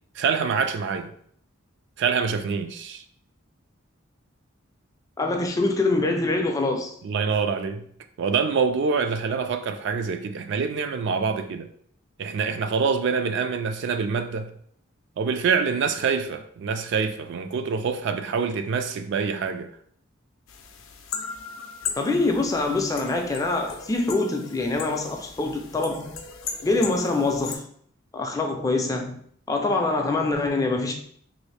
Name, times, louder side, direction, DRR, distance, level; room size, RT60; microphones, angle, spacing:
voice 1, 0.2-1.1 2.0-3.0 7.0-7.8 8.2-11.7 12.2-14.5 15.2-19.7, right 5 dB, 60° right, 0.3 m, -25 dB
voice 2, 5.2-7.0 22.0-26.2 26.6-27.6 28.1-29.2 29.5-30.9, left 2 dB, 15° left, 0.3 m, -24 dB
sound 1, 20.5-27.6, left 6 dB, 80° left, 0.4 m, -37 dB
3.1 x 2.6 x 3.2 m
head